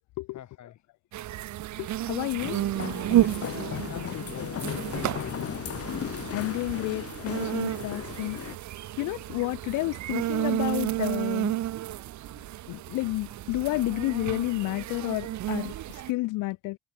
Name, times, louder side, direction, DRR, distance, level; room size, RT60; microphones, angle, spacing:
voice 1, 0.3-0.8 3.3-5.5, left 11 dB, 65° left, 3.5 m, -44 dB
sound 1, 1.1-16.1, right 14 dB, 65° right, 0.9 m, -31 dB
voice 2, 1.8-2.6 6.3-8.4 9.0-11.6 12.7-16.8, left 20 dB, 85° left, 0.7 m, -30 dB
sound 2, 2.4-8.6, left 9 dB, 50° left, 1.3 m, -36 dB
supercardioid pair, 65°, 30 cm